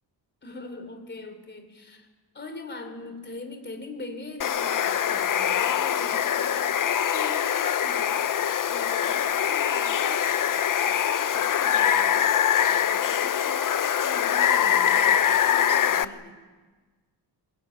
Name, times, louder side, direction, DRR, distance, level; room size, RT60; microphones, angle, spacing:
voice 1, 0.4-2.1 2.3-16.4, left 2 dB, 25° left, 6 dB, 3.3 m, -42 dB
Water, 4.4-16.1, left 9 dB, 50° left, 0.7 m, -23 dB
22.0 x 22.0 x 9.3 m, 1.4 s
wide cardioid pair, 170°, 43 cm